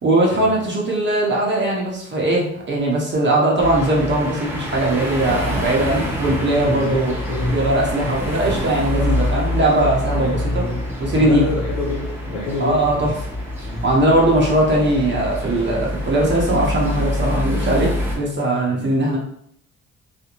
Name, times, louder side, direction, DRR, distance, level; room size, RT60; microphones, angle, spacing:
voice 1, 0.0-7.2 7.5-10.6 11.0-11.4 12.6-13.1 13.6-19.2, right 1 dB, 40° right, -3 dB, 0.7 m, -19 dB
sound 1, 3.6-18.2, left 1 dB, 5° right, 0.9 m, -26 dB
voice 2, 6.7-7.6 8.0-8.4 10.1-13.1 13.6-13.8 18.7-19.0, left 1 dB, 80° left, -2 dB, 1.0 m, -28 dB
2.5 x 2.1 x 2.9 m, 0.68 s
cardioid pair, 90°, 30 cm